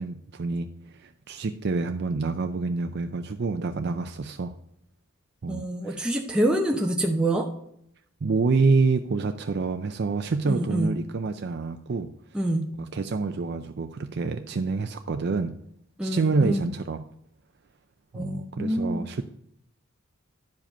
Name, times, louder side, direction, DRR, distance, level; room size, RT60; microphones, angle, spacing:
voice 1, 0.0-4.5 5.4-6.0 8.2-12.1 12.8-15.6 16.0-17.0 18.1-19.2, right 4 dB, 55° right, 7 dB, 0.4 m, -27 dB
voice 2, 5.5-7.5 10.4-10.9 12.3-12.7 16.0-16.6 18.1-19.1, right 1 dB, 5° right, 1 dB, 0.7 m, -26 dB
10.5 x 5.0 x 5.3 m, 0.72 s
head